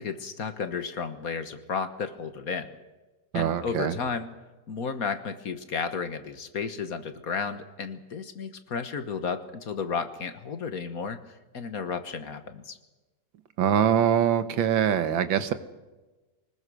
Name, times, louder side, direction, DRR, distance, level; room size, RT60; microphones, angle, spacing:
voice 1, 0.0-2.7 3.3-4.3 4.7-12.8, left 5 dB, 50° left, 10 dB, 1.6 m, -33 dB
voice 2, 3.3-3.9 13.6-15.5, right 9 dB, 85° right, 11 dB, 1.9 m, -23 dB
24.0 x 20.0 x 6.3 m, 1.1 s
omnidirectional pair, 2.0 m